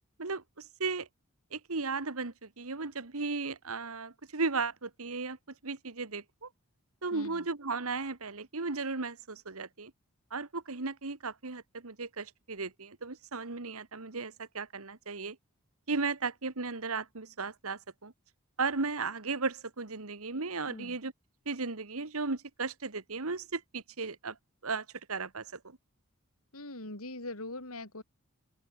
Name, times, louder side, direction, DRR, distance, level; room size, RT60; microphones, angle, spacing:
voice 1, 0.2-1.1 1.5-5.4 5.6-6.5 7.0-9.9 10.3-15.4 15.9-18.1 18.6-21.1 21.4-24.4 24.6-25.8, right 4 dB, 80° right, 1.6 m, -35 dB
voice 2, 7.1-7.4 20.7-21.0 26.5-28.0, left 2 dB, 80° left, 6.4 m, -42 dB
open air
head